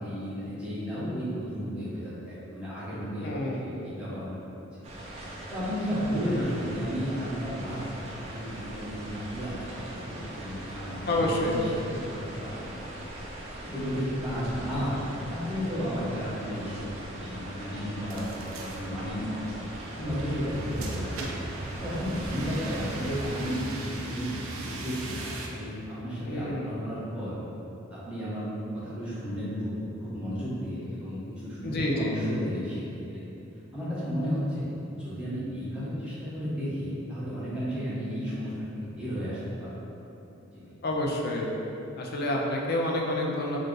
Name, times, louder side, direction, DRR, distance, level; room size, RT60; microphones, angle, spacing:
voice 1, 0.0-4.4 5.5-13.0 13.6-15.0 15.3-19.5 20.0-21.3 21.8-24.3 24.5-27.3 27.9-28.5 28.7-32.8 33.1-33.2 33.7-39.8 40.5-40.7, equal, 5° right, -12 dB, 0.8 m, -33 dB
voice 2, 3.2-3.7 6.2-6.4 11.1-11.6 26.3-26.7 31.6-32.2 40.8-41.5 42.0-43.6, left 1 dB, 50° left, -1 dB, 0.4 m, -28 dB
sound 1, 4.8-23.5, right 1 dB, 30° right, 0.5 m, -41 dB
sound 2, 18.1-25.5, right 2 dB, 90° right, 0.4 m, -38 dB
2.7 x 2.4 x 3.6 m, 2.9 s
head